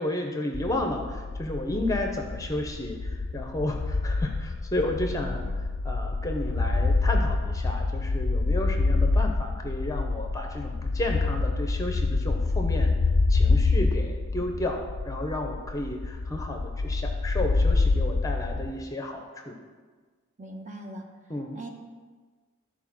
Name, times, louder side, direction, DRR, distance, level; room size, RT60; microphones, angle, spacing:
voice 1, 0.0-5.5 5.8-12.9 13.3-19.6 21.3-21.6, left 1 dB, 15° left, 2 dB, 0.8 m, -32 dB
sound 1, 0.5-18.8, left 3 dB, 50° left, 0.5 m, -26 dB
voice 2, 5.2-5.6 20.4-21.1 21.5-21.7, right 1 dB, 35° right, 1 dB, 1.1 m, -41 dB
12.5 x 4.4 x 6.0 m, 1.5 s
head